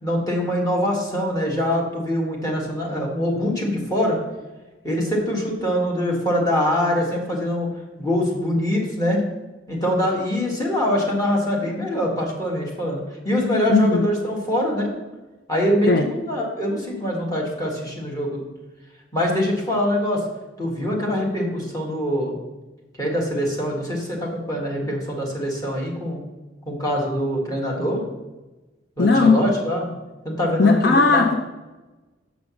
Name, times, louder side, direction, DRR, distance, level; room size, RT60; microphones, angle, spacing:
voice 1, 0.0-4.2 4.8-7.7 8.0-9.2 9.7-14.9 15.5-18.4 19.1-20.2 20.6-22.3 23.0-26.2 26.6-28.0 29.0-29.9 30.2-31.2, equal, 20° left, -2 dB, 1.7 m, -24 dB
voice 2, 13.7-14.1 15.8-16.1 29.0-29.4 30.6-31.3, left 3 dB, 60° left, 5 dB, 0.5 m, -16 dB
7.3 x 5.1 x 6.2 m, 1.1 s
head